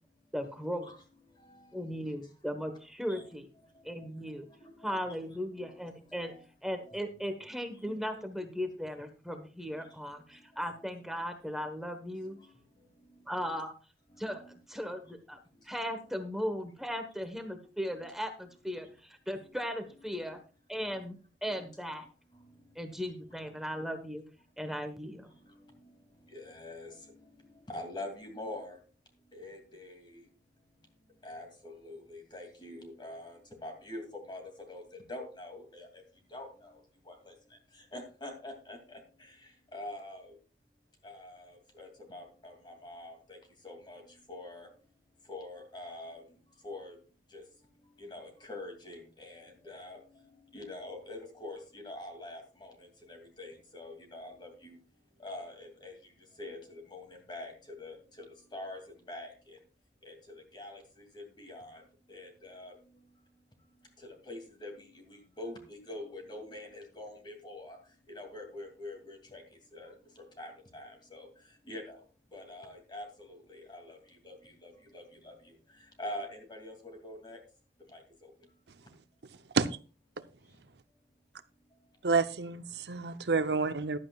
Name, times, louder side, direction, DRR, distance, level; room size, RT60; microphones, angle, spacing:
voice 1, 0.3-0.9 1.7-3.5 3.8-4.5 4.8-6.3 6.6-12.4 13.3-13.7 14.2-15.4 15.6-20.4 20.7-22.1 22.7-24.2 24.6-25.3, equal, ahead, 1.2 m, -37 dB
voice 2, 4.6-5.2 5.6-5.9 6.2-6.4 6.9-7.0 7.9-8.0 12.3-12.5 25.5-25.6 26.3-27.1 27.7-28.8 29.3-30.3 31.2-36.0 36.3-37.3 37.7-40.3 41.0-43.4 43.6-44.0 44.3-44.7 45.3-46.2 46.6-47.0 47.3-47.4 48.0-50.0 50.5-54.8 55.2-56.0 56.4-58.3 58.5-58.8 59.1-59.6 60.0-61.8 62.1-62.7 64.0-67.8 68.1-69.4 69.7-71.3 71.7-72.0 72.3-74.0 74.2-75.5 76.0-77.4 77.9-78.3, left 1 dB, 25° left, 2.6 m, -45 dB
voice 3, 82.0-84.0, right 4 dB, 70° right, 0.7 m, -29 dB
14.5 x 11.5 x 2.4 m
head